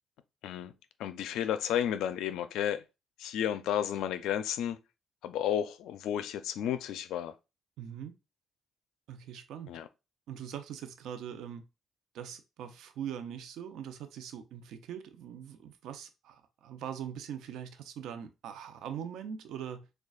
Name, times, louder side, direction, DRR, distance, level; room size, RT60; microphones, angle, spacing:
voice 1, 1.0-2.8 3.2-4.8 5.2-7.3 9.7-9.9, left 10 dB, 85° left, 0.4 m, -32 dB
voice 2, 7.8-8.1 9.1-9.8 10.3-11.6 12.1-19.9, right 9 dB, 85° right, 0.6 m, -42 dB
6.4 x 2.3 x 2.4 m
cardioid pair, 90°, 0 cm